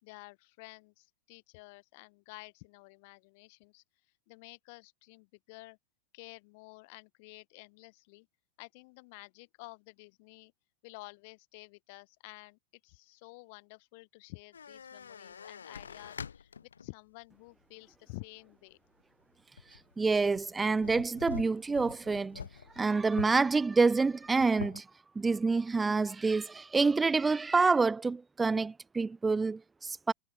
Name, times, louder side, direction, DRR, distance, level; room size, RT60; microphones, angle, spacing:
voice 1, 0.0-3.8 4.3-5.8 6.1-8.3 8.6-10.5 10.8-18.8, left 28 dB, 45° left, 6.2 m, -51 dB
sound 1, 14.5-16.9 17.5-17.6 19.6-19.9 20.4-23.4 23.8-23.9 24.1-24.8, left 7 dB, 70° left, 4.5 m, -45 dB
voice 2, 20.0-22.4 22.8-24.8 25.2-30.1, right 4 dB, 10° right, 0.3 m, -27 dB
figure-of-eight pair, 90°, 0 cm